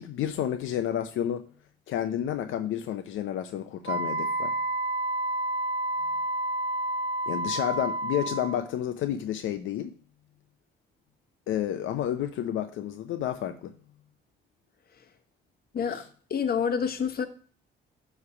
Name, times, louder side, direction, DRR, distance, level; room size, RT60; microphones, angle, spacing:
voice 1, 0.0-1.4 1.9-4.5 7.3-9.9 11.5-13.7 15.9-16.0, left 10 dB, 80° left, 0.6 m, -30 dB
Wind instrument woodwind instrument, 3.9-8.7, right 1 dB, 25° right, 2.6 m, -30 dB
voice 2, 16.3-17.3, left 7 dB, 50° left, 1.1 m, -27 dB
9.6 x 3.3 x 5.8 m
cardioid pair, 90°, 20 cm